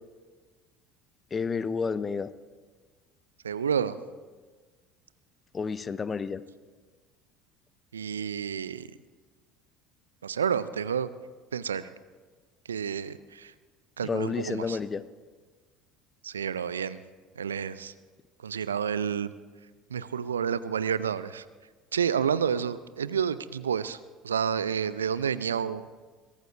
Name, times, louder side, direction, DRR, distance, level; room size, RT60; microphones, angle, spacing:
voice 1, 1.3-2.3 5.5-6.4 14.0-15.1, left 5 dB, 25° left, 16 dB, 0.6 m, -30 dB
voice 2, 3.4-4.0 7.9-8.9 10.2-11.1 11.5-11.9 12.7-13.5 14.0-14.8 16.2-17.0 17.4-17.9 18.4-19.3 19.9-21.4 21.9-24.0 24.2-25.9, right 7 dB, 80° right, 16 dB, 0.4 m, -29 dB
21.5 x 17.0 x 2.6 m, 1.4 s
figure-of-eight pair, 65°, 0 cm